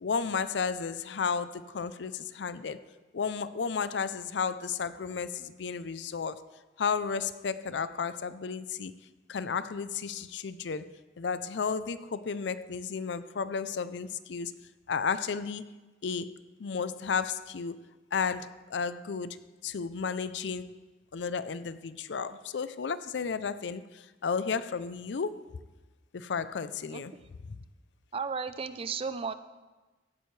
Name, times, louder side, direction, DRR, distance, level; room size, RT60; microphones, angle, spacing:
voice 1, 0.0-2.8 3.1-6.4 6.8-8.9 9.3-14.6 14.9-15.7 16.0-16.3 16.6-17.8 18.1-20.8 21.1-25.4 26.1-27.1, left 5 dB, 70° left, 0.5 m, -33 dB
voice 2, 28.1-29.3, right 5 dB, 30° right, 0.4 m, -34 dB
16.0 x 8.9 x 3.2 m
head